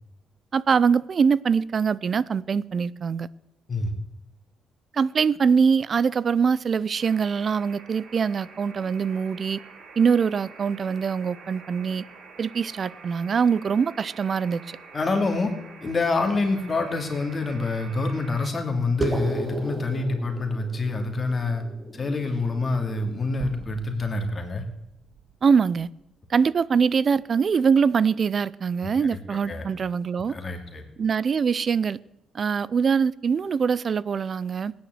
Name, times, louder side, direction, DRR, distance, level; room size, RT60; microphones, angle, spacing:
voice 1, 0.5-3.3 4.9-9.6 10.0-12.0 12.4-14.8 25.4-25.9 26.3-30.3 31.0-32.0 32.3-34.7, right 6 dB, 45° right, 0.6 m, -23 dB
sound 1, 7.0-18.5, right 4 dB, 60° right, 4.4 m, -47 dB
voice 2, 14.9-15.5 15.8-21.6 21.9-24.6 29.0-29.7 30.3-30.8, left 3 dB, 35° left, 2.8 m, -27 dB
sound 2, 19.0-23.8, right 2 dB, 25° right, 2.3 m, -34 dB
sound 3, 23.4-27.6, right 7 dB, 80° right, 1.4 m, -47 dB
17.5 x 9.6 x 7.9 m
cardioid pair, 90°, 0 cm